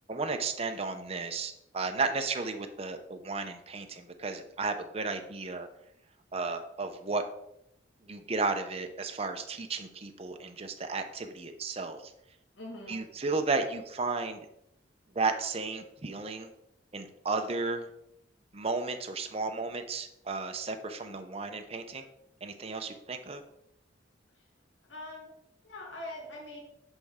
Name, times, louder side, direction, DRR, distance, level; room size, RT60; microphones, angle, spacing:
voice 1, 0.1-5.7 6.3-7.2 8.1-12.0 12.9-14.5 15.1-16.5 16.9-17.9 18.5-22.0 22.4-23.4, right 3 dB, 30° right, 6 dB, 0.7 m, -33 dB
voice 2, 12.6-13.0 24.9-25.3 25.6-26.6, left 1 dB, 80° left, -3 dB, 1.7 m, -42 dB
10.5 x 4.5 x 3.7 m, 0.79 s
head